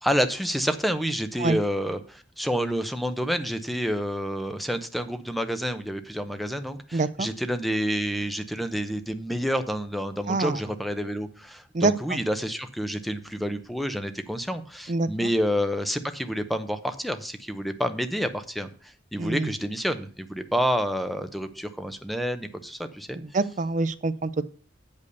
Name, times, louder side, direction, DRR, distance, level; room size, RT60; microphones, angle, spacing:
voice 1, 0.0-23.2, equal, ahead, 9 dB, 0.7 m, -29 dB
voice 2, 6.9-7.3 10.3-10.6 11.7-12.2 14.9-15.3 19.2-19.5 23.2-24.4, right 3 dB, 40° right, 14 dB, 0.5 m, -26 dB
8.1 x 5.4 x 6.7 m, 0.43 s
head